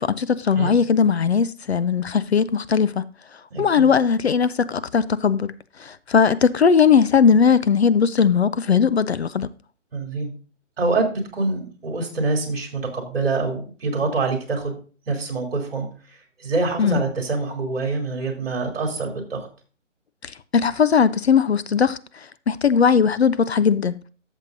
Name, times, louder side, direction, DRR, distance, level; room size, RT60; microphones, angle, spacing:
voice 1, 0.0-3.0 3.6-5.5 5.8-9.5 16.8-17.0 20.2-22.0 22.5-24.0, left 6 dB, 60° left, 0.5 m, -19 dB
voice 2, 3.5-3.9 9.9-10.3 10.8-14.8 15.1-19.5, right 3 dB, 50° right, 3.2 m, -25 dB
13.5 x 7.1 x 2.6 m
hypercardioid pair, 175°, 37 cm